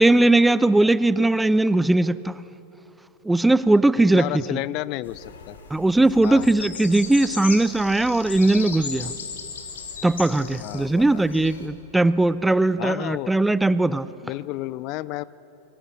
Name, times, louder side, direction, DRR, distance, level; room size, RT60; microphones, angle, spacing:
voice 1, 0.0-2.4 3.2-4.6 5.7-9.1 10.0-14.1, right 2 dB, 5° right, 18 dB, 0.6 m, -19 dB
voice 2, 4.1-5.6 6.2-6.5 10.6-11.3 12.8-13.3 14.2-15.2, left 18 dB, 40° left, 21 dB, 0.5 m, -31 dB
sound 1, 5.0-11.7, left 6 dB, 65° left, 2.8 m, -37 dB
29.0 x 23.5 x 8.4 m, 3.0 s
figure-of-eight pair, 90°, 0 cm